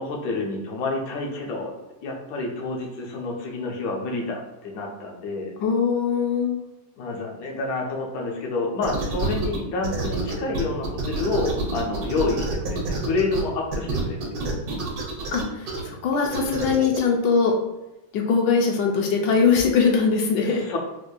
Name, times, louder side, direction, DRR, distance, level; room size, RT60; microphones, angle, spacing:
voice 1, 0.0-1.7 2.0-5.5 7.0-14.3 20.4-20.8, left 3 dB, 65° left, -1 dB, 1.1 m, -28 dB
voice 2, 5.6-6.6 15.3-17.5 18.1-20.6, left 5 dB, 85° left, 0 dB, 1.2 m, -21 dB
sound 1, 8.8-9.6 9.8-13.4 13.7-15.8 16.2-17.0, right 3 dB, 80° right, 1.4 m, -28 dB
4.3 x 2.5 x 2.2 m, 1.0 s
omnidirectional pair, 1.9 m